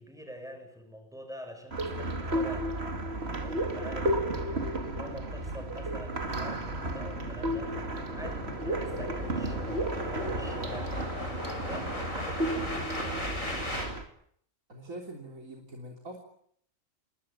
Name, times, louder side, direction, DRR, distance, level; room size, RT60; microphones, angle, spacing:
voice 1, 0.0-2.9 3.2-7.8 8.1-11.0 11.5-13.8, equal, ahead, 6 dB, 6.6 m, -46 dB
sound 1, 1.7-14.0, right 1 dB, 50° right, 2.5 m, -33 dB
sound 2, 4.4-13.9, left 1 dB, 75° left, 7.6 m, -39 dB
voice 2, 14.7-16.2, right 1 dB, 90° right, 1 dB, 3.8 m, -43 dB
28.5 x 20.5 x 8.9 m, 0.68 s
omnidirectional pair, 1.4 m